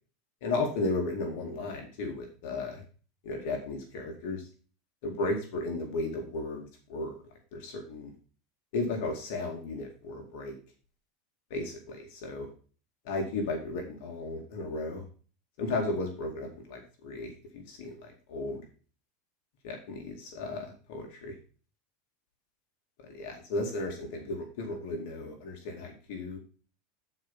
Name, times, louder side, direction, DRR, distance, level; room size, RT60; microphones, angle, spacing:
voice 1, 0.4-2.8 3.2-4.4 5.0-7.2 7.5-8.1 8.7-10.6 11.5-12.5 13.0-15.1 15.6-18.6 19.6-21.3 23.0-26.4, left 2 dB, 65° left, 2 dB, 2.4 m, -34 dB
9.7 x 5.0 x 5.5 m, 0.38 s
supercardioid pair, 140°, 0 cm